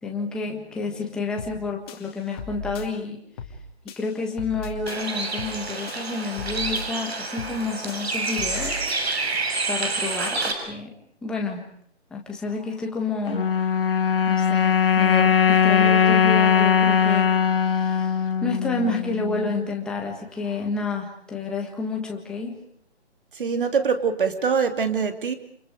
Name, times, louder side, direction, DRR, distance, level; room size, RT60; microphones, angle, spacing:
voice 1, 0.0-3.2 4.0-8.8 9.7-10.9 11.2-11.6 12.1-13.4 14.3-22.6, left 3 dB, ahead, 0 dB, 1.6 m, -30 dB
sound 1, 1.4-1.6 1.9-2.9 3.4-3.6 3.9-5.0 5.4-5.6 5.9-6.9 7.4-7.6 7.9-9.0, left 4 dB, 20° left, 2.7 m, -37 dB
Bird, 4.9-10.5, right 3 dB, 70° right, 6.8 m, -28 dB
sound 2, 13.3-19.7, left 7 dB, 55° left, 2.1 m, -20 dB
voice 2, 23.3-25.3, right 6 dB, 50° right, 7 dB, 3.1 m, -23 dB
29.5 x 28.0 x 5.1 m, 0.64 s
hypercardioid pair, 170°, 33 cm